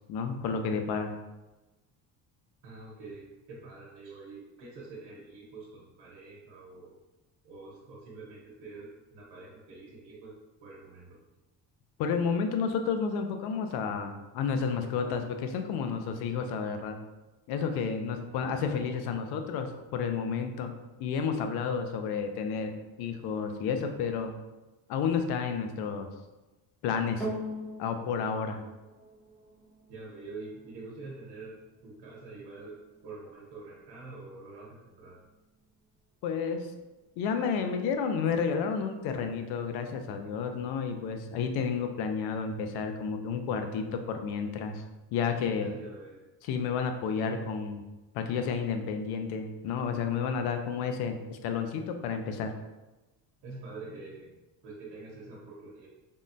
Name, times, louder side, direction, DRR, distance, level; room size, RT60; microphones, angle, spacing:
voice 1, 0.1-1.1 12.0-17.0 17.5-20.7 21.0-24.3 24.9-26.1 26.8-27.3 27.8-28.6 36.2-36.7 37.2-44.8 45.1-45.7 46.4-47.8 48.1-52.5, left 6 dB, 75° left, 6 dB, 0.5 m, -31 dB
voice 2, 2.6-6.9 7.4-10.4 10.6-11.2 17.6-18.5 19.1-19.2 29.9-35.2 45.5-46.3 53.4-54.3 54.6-55.9, right 3 dB, 90° right, -4 dB, 0.9 m, -46 dB
sound 1, 27.2-35.8 36.5-36.6, equal, ahead, 0.4 m, -44 dB
3.6 x 2.1 x 2.5 m, 1.1 s
cardioid pair, 165°, 39 cm